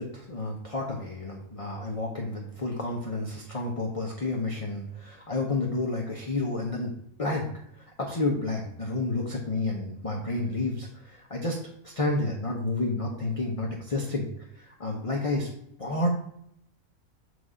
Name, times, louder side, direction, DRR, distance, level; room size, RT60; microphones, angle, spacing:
voice 1, 0.0-6.9 7.2-7.5 7.8-14.3 14.5-15.5 15.8-16.1, left 2 dB, 30° left, -1 dB, 0.7 m, -30 dB
7.8 x 2.6 x 4.9 m, 0.72 s
omnidirectional pair, 1.5 m